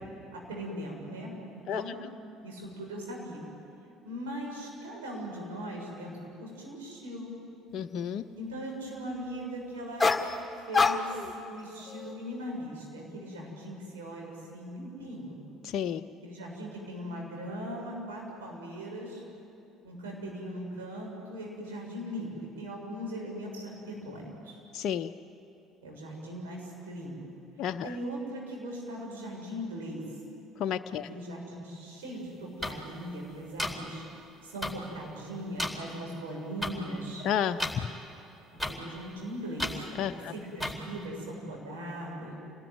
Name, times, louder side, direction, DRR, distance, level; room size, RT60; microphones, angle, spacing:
voice 1, 0.3-2.0 2.4-3.4 4.0-7.3 8.4-10.0 10.7-11.2 11.4-15.4 16.2-19.2 19.8-24.6 25.8-27.2 27.8-30.0 31.1-34.0 34.4-37.3 38.7-39.8 40.1-42.3, equal, 75° right, -1 dB, 7.0 m, -39 dB
voice 2, 7.7-8.2 15.6-16.1 24.7-25.1 27.6-27.9 30.6-31.1 37.2-37.9 40.0-40.3, left 9 dB, 50° left, 8 dB, 0.6 m, -31 dB
sound 1, 10.0-10.4 10.7-11.3 11.8-12.1, left 4 dB, 15° left, 2.0 m, -26 dB
sound 2, 32.6-32.7 33.6-33.7 34.6-34.7 35.6-35.7 36.6-36.7 37.6-37.7 38.6-38.7 39.6-39.7 40.6-40.7, left 1 dB, 10° right, 4.4 m, -31 dB
28.5 x 19.5 x 9.6 m, 2.8 s
figure-of-eight pair, 55°, 0 cm